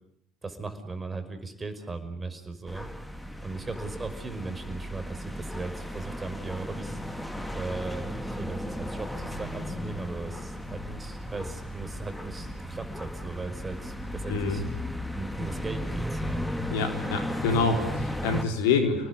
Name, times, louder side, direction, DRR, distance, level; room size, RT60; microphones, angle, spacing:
voice 1, 0.4-2.9 3.4-14.6 15.2-16.4, right 3 dB, 20° right, 8 dB, 5.6 m, -38 dB
sound 1, 2.7-18.4, left 1 dB, 5° left, 2.9 m, -35 dB
voice 2, 14.3-14.6 16.7-19.1, left 4 dB, 70° left, 5 dB, 4.4 m, -26 dB
30.0 x 20.0 x 9.6 m, 0.72 s
hypercardioid pair, 65°, 0 cm